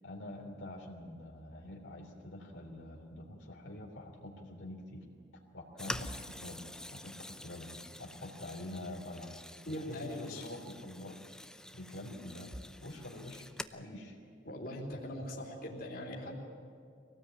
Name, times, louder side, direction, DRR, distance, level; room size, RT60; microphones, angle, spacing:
voice 1, 0.0-5.1 5.5-6.6 6.9-7.7 8.0-9.4 9.6-11.2 11.7-12.5 12.8-13.5 13.7-14.2, left 1 dB, 85° left, 0 dB, 3.3 m, -46 dB
sound 1, 5.8-13.6, left 1 dB, 5° left, 0.7 m, -46 dB
voice 2, 9.7-10.5 14.5-16.4, left 1 dB, 55° left, 0 dB, 3.7 m, -41 dB
24.5 x 18.0 x 8.9 m, 2.5 s
head